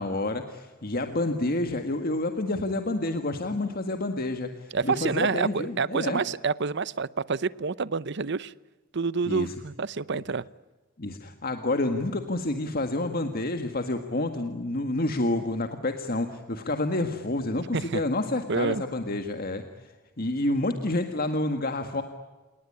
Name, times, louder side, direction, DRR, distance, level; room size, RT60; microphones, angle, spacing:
voice 1, 0.0-6.2 9.3-9.5 11.0-22.0, left 2 dB, 50° left, 6 dB, 1.8 m, -29 dB
voice 2, 4.7-8.5 8.9-10.4 17.7-18.0 18.5-18.8, right 4 dB, 60° right, 19 dB, 0.8 m, -28 dB
30.0 x 19.0 x 9.8 m, 1.3 s
head